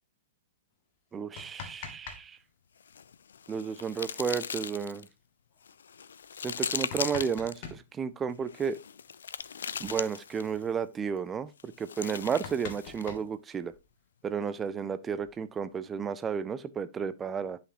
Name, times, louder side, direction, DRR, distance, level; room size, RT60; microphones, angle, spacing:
sound 1, 1.1-2.2 2.5-2.6 4.3-4.4 4.8-4.9 5.5-5.6 6.4-7.8 9.4-9.5 9.7-10.0 10.3-10.7 11.2-11.3 11.7-11.8 12.1-14.0 14.9-15.7, left 6 dB, 40° left, 1.5 m, -45 dB
voice 1, 1.1-2.4 3.5-5.1 6.4-8.8 9.8-13.7 14.2-17.6, right 6 dB, 15° right, 0.4 m, -32 dB
sound 2, 2.8-5.1 5.6-7.6 8.5-10.6 11.6-13.2, left 7 dB, 60° left, 0.4 m, -38 dB
11.0 x 5.9 x 2.8 m
figure-of-eight pair, 105°, 0 cm